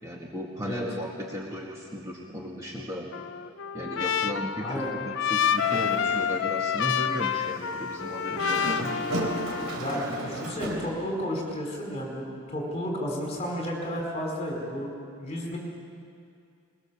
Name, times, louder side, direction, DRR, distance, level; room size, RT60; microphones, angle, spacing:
voice 1, 0.0-3.1 3.7-8.9, equal, 15° right, -2 dB, 1.9 m, -36 dB
Trumpet, 3.1-9.9, left 8 dB, 55° left, 0.6 m, -28 dB
Dog, 5.4-6.5 6.9-7.0 8.2-10.9, right 1 dB, 90° right, 3.8 m, -34 dB
voice 2, 9.8-14.9 15.2-15.6, equal, 30° left, -1 dB, 4.9 m, -32 dB
22.0 x 21.5 x 7.2 m, 2.4 s
head